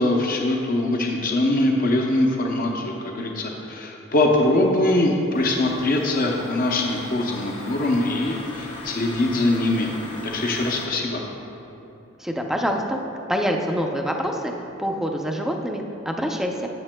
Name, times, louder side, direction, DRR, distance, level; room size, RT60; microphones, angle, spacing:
voice 1, 0.0-9.9 10.2-11.2, left 1 dB, 45° left, 1 dB, 0.6 m, -22 dB
sound 1, 5.3-10.9, left 2 dB, 90° left, 1.3 m, -38 dB
voice 2, 12.2-13.0 13.3-14.5 14.8-16.7, equal, ahead, 2 dB, 0.5 m, -25 dB
12.0 x 8.1 x 2.2 m, 2.9 s
head